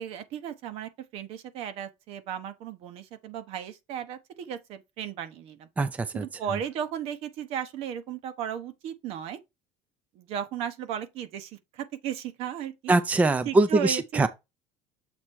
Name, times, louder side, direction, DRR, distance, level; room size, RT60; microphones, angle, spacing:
voice 1, 0.0-5.7 6.1-9.4 10.1-13.0 13.4-14.3, right 9 dB, 65° right, 1.0 m, -35 dB
voice 2, 5.8-6.3 12.9-14.3, right 2 dB, 15° right, 0.5 m, -23 dB
7.3 x 3.2 x 4.6 m
cardioid pair, 145°, 11 cm